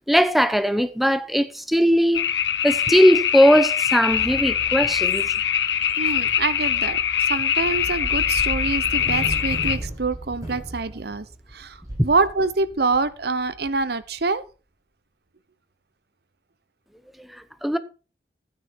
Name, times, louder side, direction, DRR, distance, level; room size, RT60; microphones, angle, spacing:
voice 1, 0.1-2.2 2.6-5.3 12.0-12.1 17.2-17.8, equal, ahead, 0.7 m, -19 dB
sound 1, 2.1-9.8, left 9 dB, 90° left, 0.9 m, -23 dB
sound 2, 4.1-14.3, right 1 dB, 20° right, 6.5 m, -36 dB
voice 2, 6.0-11.3 11.5-14.4, right 3 dB, 65° right, 0.9 m, -25 dB
12.5 x 9.6 x 4.4 m
head